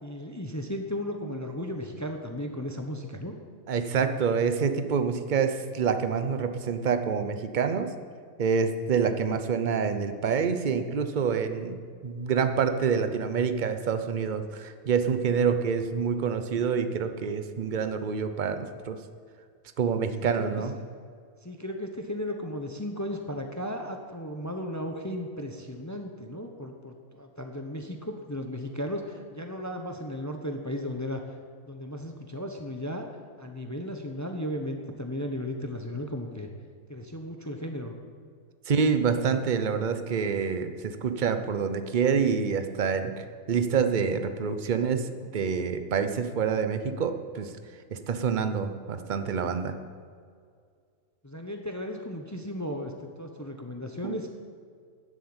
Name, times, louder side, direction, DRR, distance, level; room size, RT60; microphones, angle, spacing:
voice 1, 0.0-3.3 20.3-20.5 21.4-31.2 31.7-33.1 33.4-36.5 36.9-37.9 51.2-54.3, left 1 dB, 15° left, 4 dB, 0.8 m, -35 dB
voice 2, 3.7-7.9 8.4-19.0 19.8-20.7 38.7-47.5 47.9-49.8 54.0-54.1, right 6 dB, 40° right, 8 dB, 0.8 m, -27 dB
11.5 x 7.7 x 8.8 m, 2.1 s
omnidirectional pair, 1.5 m